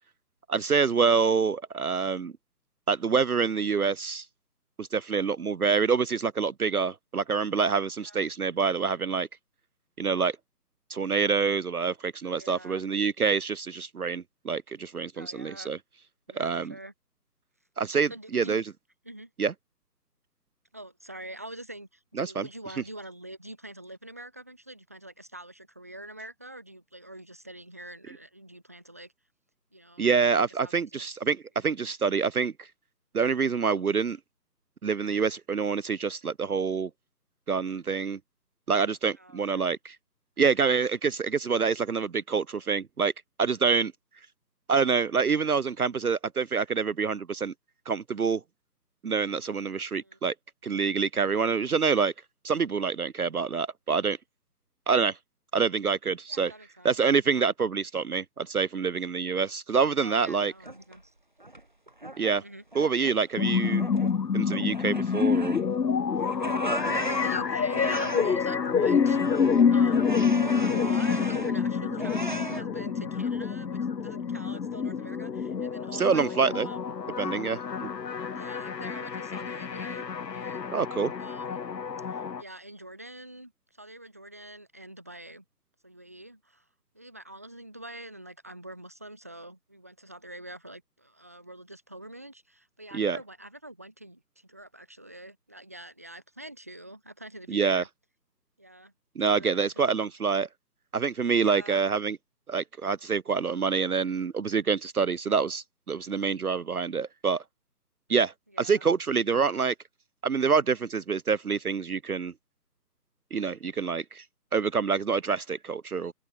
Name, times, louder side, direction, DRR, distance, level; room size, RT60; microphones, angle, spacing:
voice 1, 0.5-2.3 2.9-4.3 4.8-9.3 10.0-10.4 10.9-15.8 16.3-16.7 17.8-18.6 19.4-19.5 22.2-22.5 30.0-32.7 33.1-34.2 34.8-36.9 37.5-38.2 38.7-40.0 40.4-43.1 43.4-43.9 44.7-47.5 47.9-48.4 49.0-50.3 50.6-52.1 52.4-54.2 54.9-55.2 55.5-56.5 56.8-60.5 62.2-62.4 62.7-63.9 64.3-65.5 75.9-76.7 77.2-77.9 80.7-81.1 92.9-93.2 97.5-97.8 99.2-100.5 100.9-102.2 102.5-107.4 108.1-109.7 110.2-112.3 113.3-114.2 114.5-116.1, right 5 dB, 60° right, 0.8 m, -26 dB
voice 2, 12.2-12.8 15.1-15.7 16.3-16.9 18.1-18.6 19.0-19.3 20.7-29.1 29.7-30.1 30.3-31.0 39.2-39.6 50.0-50.2 56.3-57.0 60.0-61.1 62.4-62.6 66.8-69.4 69.7-70.2 70.5-76.9 78.3-80.8 81.2-81.6 82.1-85.4 85.8-86.7 86.9-97.9 98.6-98.9 99.3-99.7 101.3-101.8 108.5-108.9, right 1 dB, 10° right, 1.1 m, -44 dB
sound 1, 60.1-61.0 61.4-62.4 62.7-63.3 63.6-64.2 64.5-65.9 66.2-68.4 68.8-71.6 72.0-72.6, right 1 dB, 30° right, 0.9 m, -37 dB
sound 2, 63.4-82.4, left 6 dB, 75° left, 1.1 m, -27 dB
open air
figure-of-eight pair, 165°, 50 cm